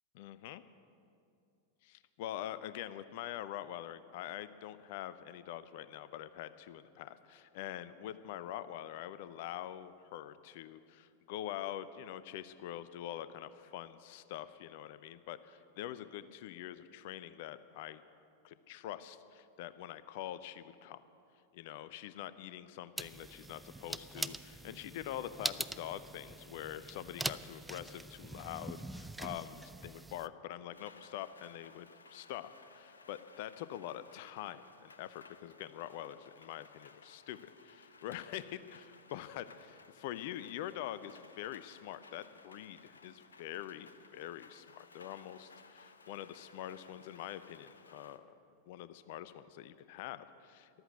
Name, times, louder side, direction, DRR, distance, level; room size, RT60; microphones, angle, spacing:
voice 1, 0.1-0.6 1.8-18.0 18.4-21.0 21.5-48.2 48.7-50.7, left 12 dB, 50° left, 14 dB, 0.6 m, -45 dB
sound 1, 23.0-30.3, right 2 dB, 5° right, 0.4 m, -43 dB
Rain, 30.7-48.2, left 4 dB, 75° left, 0.8 m, -59 dB
14.0 x 12.5 x 8.0 m, 2.5 s
figure-of-eight pair, 90°, 0 cm